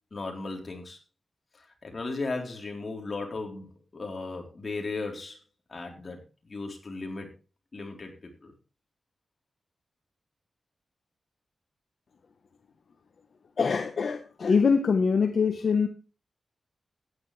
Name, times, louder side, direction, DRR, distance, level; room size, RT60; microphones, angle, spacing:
voice 1, 0.1-1.0 1.5-5.4 5.7-6.2 6.5-7.3 7.7-8.1 8.4-8.5, left 3 dB, 45° left, 2 dB, 3.8 m, -36 dB
voice 2, 13.6-15.9, left 5 dB, 65° left, 6 dB, 1.1 m, -24 dB
15.0 x 10.0 x 3.3 m, 0.32 s
wide cardioid pair, 95°, 0 cm